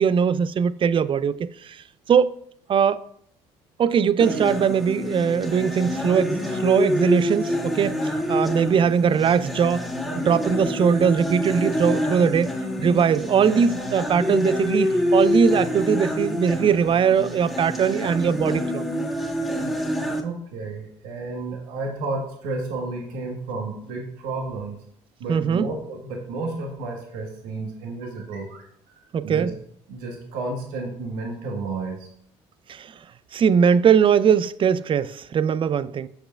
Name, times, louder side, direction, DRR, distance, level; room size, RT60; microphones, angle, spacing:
voice 1, 0.0-2.3 2.7-3.0 3.8-8.0 8.3-9.9 10.2-12.5 12.8-18.8 25.3-25.7 29.1-29.5 32.7-32.9 33.3-36.1, right 7 dB, 35° right, 0.4 m, -20 dB
sound 1, 4.2-20.2, left 1 dB, ahead, 1.7 m, -26 dB
voice 2, 20.2-24.8 25.2-29.5 29.9-32.1, right 3 dB, 75° right, 1.3 m, -32 dB
7.9 x 6.5 x 2.3 m
hypercardioid pair, 60°, 14 cm